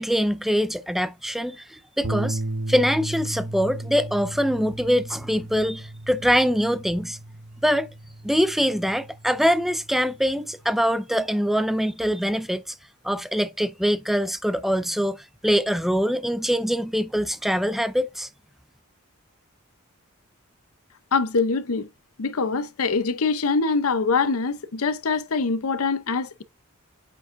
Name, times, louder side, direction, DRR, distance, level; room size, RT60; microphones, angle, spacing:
voice 1, 0.0-2.4 2.7-7.2 7.6-7.9 8.2-12.7 13.0-18.3, equal, ahead, 0.4 m, -23 dB
sound 1, 2.0-10.4, right 1 dB, 55° right, 1.0 m, -35 dB
voice 2, 21.1-21.9 22.2-26.4, left 4 dB, 80° left, 0.7 m, -24 dB
8.7 x 4.7 x 2.6 m
head